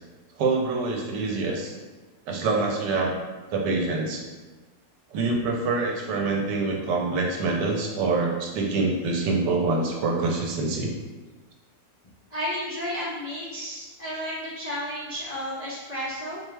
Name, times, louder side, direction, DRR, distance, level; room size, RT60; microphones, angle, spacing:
voice 1, 0.4-1.7 2.3-3.2 3.5-4.3 5.1-10.9, right 3 dB, 80° right, 0 dB, 1.3 m, -25 dB
voice 2, 12.3-16.4, equal, 90° left, -8 dB, 0.3 m, -32 dB
4.4 x 2.4 x 3.2 m, 1.3 s
omnidirectional pair, 1.9 m